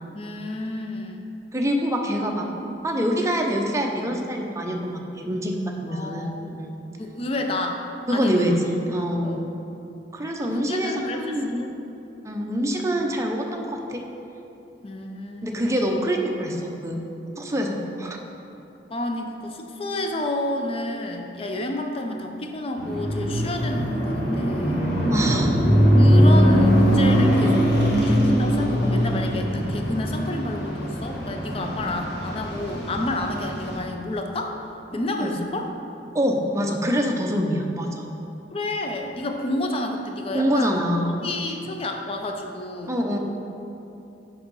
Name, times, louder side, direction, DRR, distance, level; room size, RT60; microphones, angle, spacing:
voice 1, 0.1-1.3 2.2-2.7 5.9-6.6 7.0-7.8 8.1-8.6 9.2-9.4 10.4-11.7 14.8-15.7 18.9-24.9 25.9-34.6 34.9-35.7 38.5-40.8 41.2-43.0, left 1 dB, 35° left, 3 dB, 0.5 m, -30 dB
voice 2, 1.5-2.5 2.8-5.5 5.8-6.7 8.1-9.5 10.1-11.6 12.2-14.0 15.4-17.0 17.4-18.2 25.1-25.5 35.2-35.4 36.1-38.0 40.3-41.2 41.4-41.5 42.9-43.2, equal, 15° right, 1 dB, 0.6 m, -25 dB
sound 1, 22.8-33.8, equal, 65° left, 1.6 m, -21 dB
5.4 x 5.3 x 5.4 m, 2.9 s
head